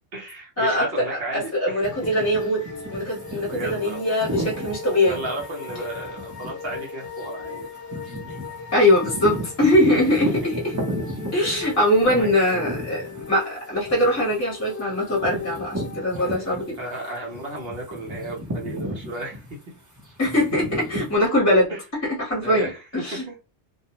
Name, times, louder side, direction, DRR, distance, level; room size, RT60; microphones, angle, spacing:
voice 1, 0.1-1.8 3.4-4.2 5.1-7.7 8.0-8.4 9.9-10.2 11.5-11.7 12.0-12.9 16.1-19.6 21.7-21.8 22.4-23.4, right 1 dB, 60° right, -1 dB, 0.9 m, -34 dB
voice 2, 1.3-2.6 2.9-5.2 8.7-10.5 11.3-16.8 20.2-21.7 22.1-23.2, left 1 dB, 15° left, -3 dB, 0.9 m, -22 dB
sound 1, 1.8-17.0 17.3-21.1, right 1 dB, 20° right, 0.6 m, -34 dB
sound 2, 1.9-17.0, left 7 dB, 70° left, 0.8 m, -38 dB
2.3 x 2.1 x 2.8 m, 0.30 s
omnidirectional pair, 1.2 m